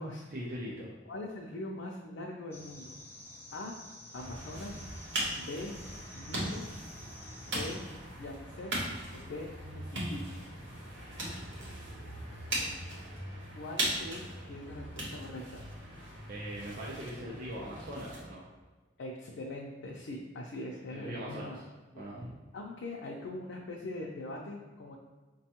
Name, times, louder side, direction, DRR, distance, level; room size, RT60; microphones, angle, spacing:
voice 1, 0.3-0.9 16.3-18.4 20.9-21.6 22.0-22.3, equal, 50° right, -5 dB, 0.6 m, -41 dB
voice 2, 1.1-3.0 3.5-3.7 4.1-4.8 5.4-5.7 6.1-6.7 7.5-7.8 8.2-8.7 9.1-10.4 13.6-15.6 19.0-21.6 21.9-22.1 22.5-25.0, left 2 dB, 85° left, -2 dB, 0.5 m, -42 dB
sound 1, 2.5-7.8, left 1 dB, 15° left, 0.4 m, -50 dB
sound 2, 4.2-18.3, right 1 dB, 65° right, 1.0 m, -39 dB
5.0 x 2.3 x 2.8 m, 1.3 s
head